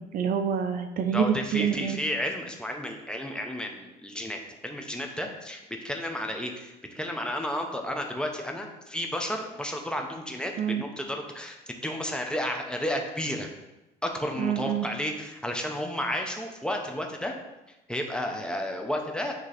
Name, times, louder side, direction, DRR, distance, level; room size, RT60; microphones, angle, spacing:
voice 1, 0.1-2.0 10.6-10.8 14.4-14.9, right 8 dB, 55° right, 7 dB, 0.6 m, -27 dB
voice 2, 1.1-13.5 14.0-17.3 17.9-19.4, left 1 dB, 5° left, 2 dB, 0.9 m, -32 dB
8.9 x 3.1 x 4.2 m, 1.0 s
cardioid pair, 110°, 17 cm